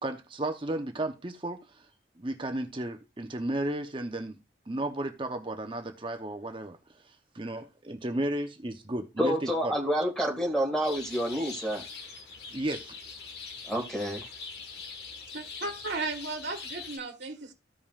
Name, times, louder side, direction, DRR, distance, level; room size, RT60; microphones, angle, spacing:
voice 1, 0.0-1.9 2.2-4.4 4.7-6.8 7.0-9.7 12.5-13.0, right 1 dB, 30° right, 0.8 m, -34 dB
voice 2, 9.2-11.8 13.7-14.2, equal, 5° left, 1.9 m, -28 dB
sound 1, 10.8-17.0, left 5 dB, 60° left, 1.4 m, -43 dB
voice 3, 15.3-17.5, right 3 dB, 90° right, 1.5 m, -35 dB
15.0 x 5.4 x 2.4 m
head